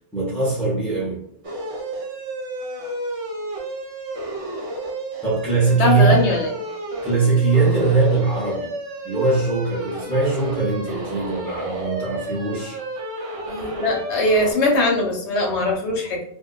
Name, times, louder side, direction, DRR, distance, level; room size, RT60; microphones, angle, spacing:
voice 1, 0.1-1.2 5.2-6.3 7.0-8.7 9.0-12.8, right 3 dB, ahead, -9 dB, 0.5 m, -21 dB
sound 1, 1.4-14.5, right 1 dB, 55° right, 0.4 m, -31 dB
voice 2, 5.8-6.5 13.4-16.2, left 1 dB, 80° left, 0 dB, 1.0 m, -21 dB
2.5 x 2.2 x 2.2 m, 0.72 s
omnidirectional pair, 1.2 m